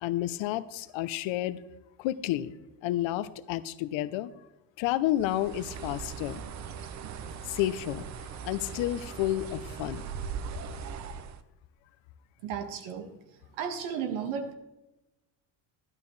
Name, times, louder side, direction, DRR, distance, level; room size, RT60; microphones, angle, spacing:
voice 1, 0.0-1.6 2.0-2.5 2.8-4.3 4.8-6.4 7.5-8.1 8.4-10.0, left 14 dB, 70° left, 14 dB, 0.8 m, -30 dB
Bird, 5.2-11.4, right 6 dB, 35° right, 0.6 m, -40 dB
voice 2, 12.4-13.1 13.5-14.5, right 7 dB, 75° right, 6 dB, 1.8 m, -34 dB
14.0 x 12.0 x 3.2 m, 0.99 s
cardioid pair, 155°, 48 cm